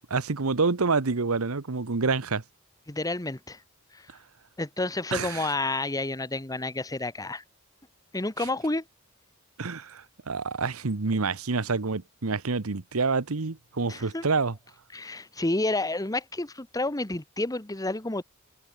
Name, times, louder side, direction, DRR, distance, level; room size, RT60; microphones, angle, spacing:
voice 1, 0.1-2.4 5.1-5.5 9.6-14.6, right 4 dB, 85° right, 1.1 m, -27 dB
voice 2, 2.9-3.6 3.9-4.1 4.6-7.4 8.1-8.8 13.9-14.2 14.9-18.2, left 2 dB, 15° left, 1.3 m, -30 dB
head